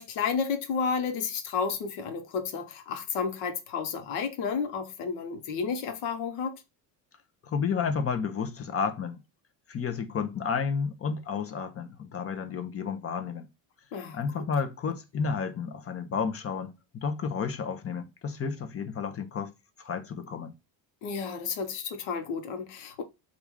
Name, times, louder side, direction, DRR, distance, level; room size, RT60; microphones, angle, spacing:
voice 1, 0.0-6.6 13.9-14.2 21.0-23.0, left 5 dB, 80° left, 0.9 m, -31 dB
voice 2, 7.4-9.2 9.7-13.5 14.1-19.5 19.8-20.5, left 6 dB, 30° left, 0.6 m, -31 dB
3.0 x 2.5 x 3.4 m
supercardioid pair, 90°, 48 cm